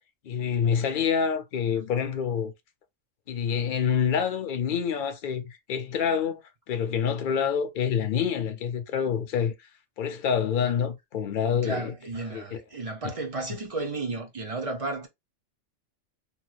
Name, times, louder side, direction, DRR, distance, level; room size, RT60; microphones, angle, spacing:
voice 1, 0.2-2.5 3.3-6.4 6.7-9.5 10.0-11.9 12.3-12.4, left 7 dB, 55° left, 0.7 m, -27 dB
voice 2, 11.6-15.1, right 3 dB, 40° right, 0.5 m, -33 dB
3.0 x 2.1 x 3.1 m
omnidirectional pair, 1.3 m